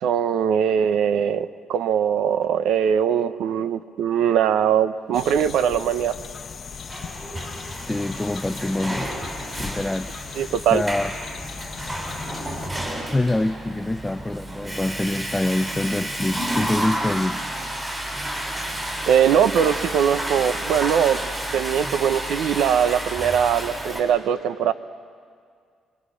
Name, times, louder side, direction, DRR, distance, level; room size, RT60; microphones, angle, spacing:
voice 1, 0.0-6.1 10.4-10.8 19.1-24.7, right 8 dB, 80° right, 13 dB, 0.8 m, -21 dB
sound 1, 5.1-12.7, left 6 dB, 50° left, 0.9 m, -38 dB
Water / Toilet flush, 6.5-24.0, right 1 dB, 25° right, 6.5 m, -31 dB
voice 2, 7.8-9.1 9.6-10.1 10.7-11.1 13.1-17.5, left 1 dB, 10° left, 8 dB, 0.5 m, -25 dB
26.0 x 23.5 x 6.4 m, 2.1 s
cardioid pair, 90°, 0 cm